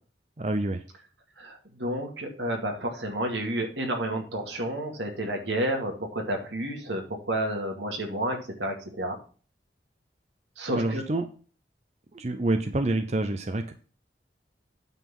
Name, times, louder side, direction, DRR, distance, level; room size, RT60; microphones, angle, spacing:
voice 1, 0.4-0.8 10.7-11.3 12.1-13.7, right 2 dB, 40° right, 8 dB, 0.6 m, -27 dB
voice 2, 1.4-9.2 10.6-11.0, right 1 dB, 85° right, 3 dB, 2.1 m, -30 dB
9.1 x 4.1 x 7.0 m, 0.40 s
head